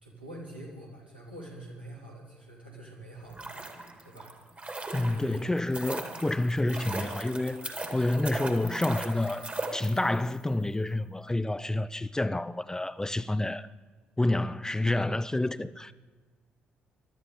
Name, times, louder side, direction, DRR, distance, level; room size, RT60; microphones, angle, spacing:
voice 1, 0.0-3.6 4.0-4.3 4.9-5.5 6.1-6.2, right 1 dB, 90° right, 2.6 m, -46 dB
sound 1, 3.2-10.3 10.6-10.7, right 2 dB, 25° right, 2.1 m, -38 dB
voice 2, 4.9-13.7 14.2-16.0, left 2 dB, 10° left, 0.4 m, -29 dB
23.5 x 12.5 x 3.8 m
figure-of-eight pair, 45°, 5 cm